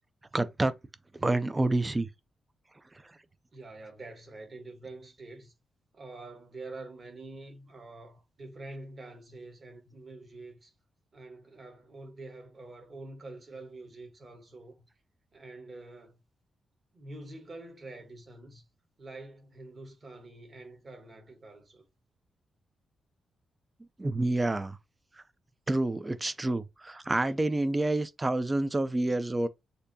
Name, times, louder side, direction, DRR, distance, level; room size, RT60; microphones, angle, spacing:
voice 1, 0.3-0.7 1.1-2.1 24.0-24.8 25.7-29.5, right 2 dB, 15° right, 0.4 m, -28 dB
voice 2, 3.5-5.5 5.9-10.7 11.1-14.9 15.3-16.2 16.9-18.6 19.0-21.9, right 2 dB, 30° right, 1.3 m, -46 dB
6.6 x 2.7 x 2.7 m
wide cardioid pair, 165°, 0 cm